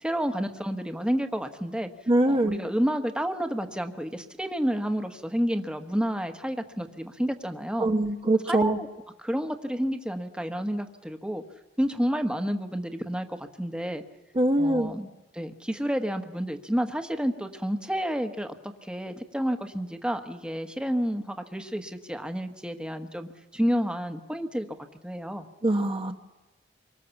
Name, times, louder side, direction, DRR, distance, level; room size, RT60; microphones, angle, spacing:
voice 1, 0.0-1.9 2.3-7.9 8.5-8.9 9.2-11.4 11.8-14.0 14.6-15.1 15.3-24.7 25.0-25.5, equal, 5° right, 6 dB, 1.3 m, -30 dB
voice 2, 2.1-2.6 7.8-8.8 14.3-14.9 25.6-26.1, right 1 dB, 30° right, 4 dB, 1.0 m, -23 dB
26.5 x 24.0 x 7.2 m, 1.1 s
head